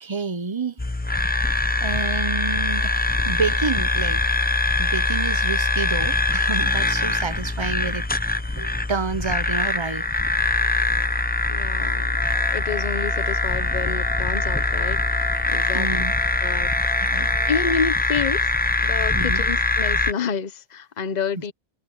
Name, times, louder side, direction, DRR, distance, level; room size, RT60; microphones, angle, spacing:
voice 1, 0.0-0.8 1.8-4.2 4.8-8.1 8.5-10.1 15.7-16.2 17.0-17.3 19.1-19.5 21.4-21.5, right 4 dB, 30° right, 0.8 m, -29 dB
sound 1, 0.8-20.1, left 2 dB, 10° left, 0.5 m, -23 dB
voice 2, 11.5-12.2 12.5-15.9 16.4-16.7 17.5-18.5 18.8-21.5, left 6 dB, 45° left, 1.0 m, -29 dB
sound 2, 12.2-17.7, right 2 dB, 80° right, 4.5 m, -41 dB
omnidirectional pair, 1.1 m